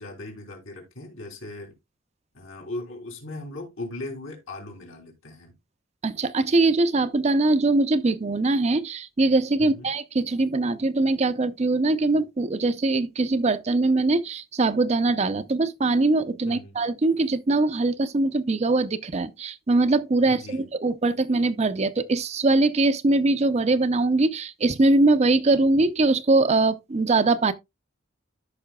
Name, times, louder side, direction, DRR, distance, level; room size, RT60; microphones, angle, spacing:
voice 1, 0.0-1.7 2.3-5.5 9.6-9.9 16.4-16.8 20.2-20.7, left 2 dB, 80° left, 3.4 m, -38 dB
voice 2, 6.0-27.5, right 2 dB, 35° right, 0.5 m, -22 dB
13.5 x 5.5 x 2.2 m
head